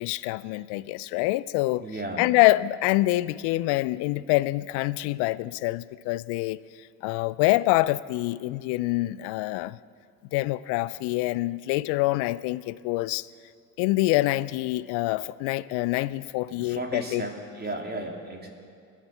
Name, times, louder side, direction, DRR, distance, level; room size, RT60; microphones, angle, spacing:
voice 1, 0.0-1.8 2.2-6.6 7.0-9.8 10.3-13.2 13.8-17.2, left 19 dB, 65° left, 0.5 m, -25 dB
voice 2, 1.8-2.3 16.5-18.5, right 1 dB, 20° right, 2.8 m, -35 dB
21.5 x 7.5 x 5.7 m
hypercardioid pair, 65°, 44 cm